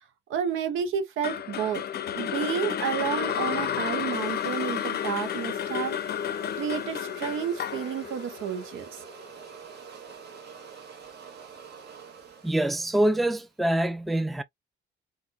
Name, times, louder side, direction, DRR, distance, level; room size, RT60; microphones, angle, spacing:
voice 1, 0.3-1.8 2.1-6.0 6.5-9.0, right 8 dB, 85° right, 1.0 m, -31 dB
sound 1, 1.2-9.4, left 9 dB, 55° left, 0.5 m, -31 dB
sound 2, 3.3-13.5, right 6 dB, 55° right, 1.5 m, -48 dB
voice 2, 12.4-14.4, right 1 dB, ahead, 0.4 m, -25 dB
4.3 x 2.6 x 2.3 m
cardioid pair, 90°, 20 cm